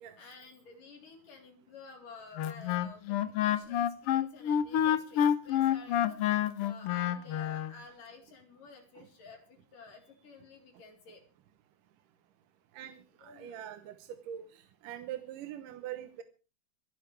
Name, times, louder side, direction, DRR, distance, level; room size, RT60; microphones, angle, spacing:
voice 1, 0.2-9.4 9.7-11.2 13.2-13.6 15.2-15.3, left 4 dB, 90° left, 3 dB, 5.5 m, -52 dB
Wind instrument woodwind instrument, 2.4-7.7, left 10 dB, 70° left, 1.4 m, -28 dB
voice 2, 13.2-13.9 14.3-14.5 14.8-16.2, right 11 dB, 85° right, 9 dB, 2.6 m, -42 dB
25.0 x 11.5 x 3.4 m, 0.34 s
omnidirectional pair, 3.7 m